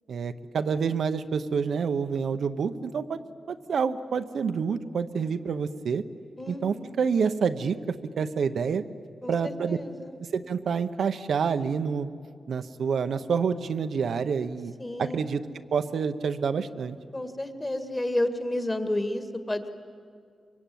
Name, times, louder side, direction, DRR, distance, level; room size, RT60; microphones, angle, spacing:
voice 1, 0.1-3.2 3.5-6.0 6.5-8.8 9.3-9.8 10.3-12.1 12.5-14.7 15.0-15.4 15.7-17.0, right 6 dB, 75° right, 9 dB, 0.9 m, -28 dB
voice 2, 6.4-6.9 9.2-10.2 14.8-15.2 17.1-19.7, left 1 dB, 15° left, 8 dB, 1.8 m, -31 dB
24.5 x 23.5 x 9.3 m, 2.3 s
wide cardioid pair, 135°, 0 cm